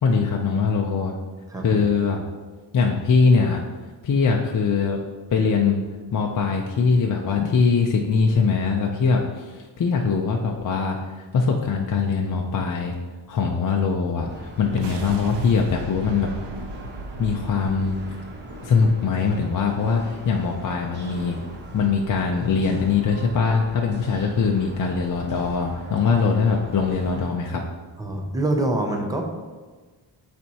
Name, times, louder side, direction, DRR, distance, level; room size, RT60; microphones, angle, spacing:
voice 1, 0.0-1.1 1.6-2.2 2.7-3.6 4.0-5.0 5.3-5.8 6.1-12.9 13.3-16.3 17.2-18.0 18.6-21.4 21.7-27.6, left 5 dB, 45° left, 1 dB, 0.5 m, -22 dB
voice 2, 1.5-1.8 28.0-29.2, right 2 dB, 10° right, 2 dB, 0.6 m, -25 dB
sound 1, 14.3-27.3, equal, 25° right, 1.0 m, -40 dB
sound 2, 14.6-19.2, right 4 dB, 70° right, 0.7 m, -38 dB
12.0 x 4.3 x 2.8 m, 1.4 s
wide cardioid pair, 180°, 44 cm